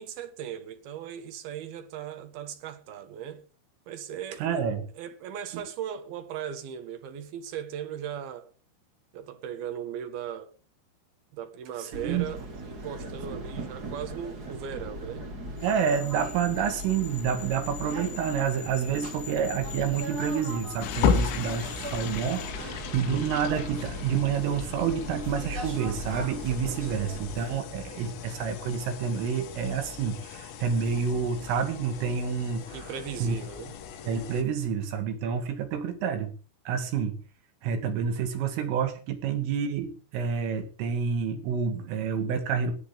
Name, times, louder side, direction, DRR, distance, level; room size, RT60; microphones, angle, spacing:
voice 1, 0.0-3.4 3.9-4.6 4.9-8.5 9.1-10.5 11.3-15.3 26.9-27.1 32.7-33.8, right 9 dB, 65° right, 2.7 m, -38 dB
voice 2, 4.4-4.9 5.5-5.6 11.8-12.3 13.3-13.4 15.6-32.9 33.2-33.4 34.1-36.3 36.7-37.3 37.6-42.7, right 7 dB, 80° right, 4.8 m, -29 dB
sound 1, 11.9-27.6, right 1 dB, 50° right, 1.2 m, -39 dB
sound 2, 15.6-22.5, left 9 dB, 70° left, 4.6 m, -44 dB
sound 3, 20.8-34.4, left 6 dB, 90° left, 4.3 m, -35 dB
16.5 x 11.0 x 5.1 m
omnidirectional pair, 5.7 m